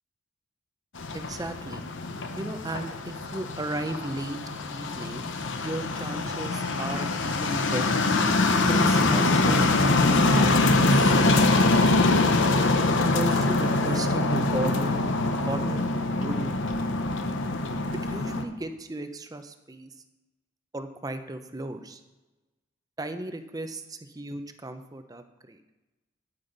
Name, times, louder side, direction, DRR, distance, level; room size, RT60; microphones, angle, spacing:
sound 1, 1.0-18.4, left 2 dB, 65° left, 0.8 m, -24 dB
voice 1, 1.1-1.8 2.3-4.4 4.7-5.2 5.6-8.0 8.7-11.6 12.6-15.1 15.4-15.9 16.1-16.6 17.9-19.9 20.7-22.0 23.0-25.6, right 1 dB, 20° right, 8 dB, 0.6 m, -35 dB
9.6 x 8.8 x 4.0 m, 1.1 s
head